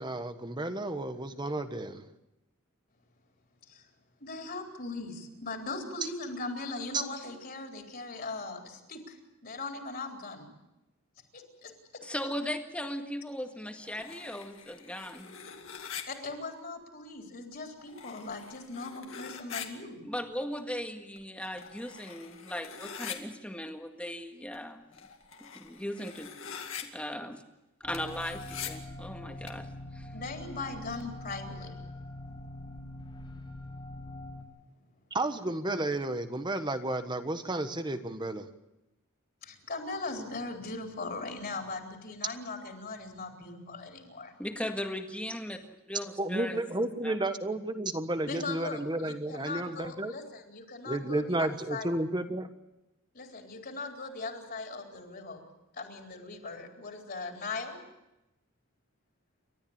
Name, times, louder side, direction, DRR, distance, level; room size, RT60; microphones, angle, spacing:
voice 1, 0.0-2.0 35.1-38.4 46.2-50.1 50.8-52.5, right 1 dB, 20° right, 9 dB, 1.3 m, -32 dB
voice 2, 4.2-9.2 9.4-10.5 11.3-12.0 16.1-20.0 30.1-31.8 39.4-44.3 48.3-51.9 53.1-55.5 55.7-57.8, left 3 dB, 45° left, 2 dB, 3.9 m, -39 dB
voice 3, 12.0-15.4 20.0-24.9 25.4-26.3 26.8-27.4 27.8-30.1 44.4-47.2, left 1 dB, 5° left, 4 dB, 1.8 m, -38 dB
sound 1, 13.8-16.0 17.5-17.6 17.8-19.7 20.6-20.7 21.2-23.2 24.5-24.6 24.9-26.8 27.9-28.7 29.5-29.6, left 8 dB, 65° left, 2.3 m, -43 dB
sound 2, 27.8-34.4, left 1 dB, 25° left, 2.8 m, -43 dB
29.5 x 13.0 x 8.8 m, 0.96 s
head